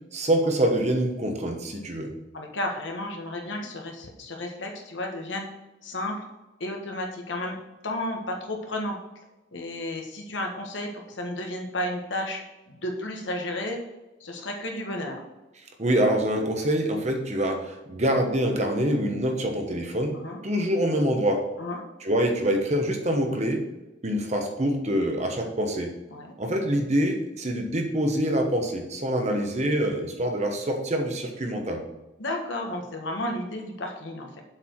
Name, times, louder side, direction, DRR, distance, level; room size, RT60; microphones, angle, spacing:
voice 1, 0.1-2.1 15.8-20.2 20.4-21.4 22.0-23.6 24.0-25.9 26.4-31.8, right 1 dB, 35° right, 3 dB, 1.1 m, -25 dB
voice 2, 2.3-5.5 5.8-6.2 6.6-9.0 9.5-12.4 12.7-13.8 14.2-15.2 20.1-20.4 21.6-21.8 26.1-26.3 32.2-34.4, left 1 dB, 75° left, 2 dB, 1.4 m, -32 dB
7.4 x 4.7 x 4.5 m, 1.0 s
head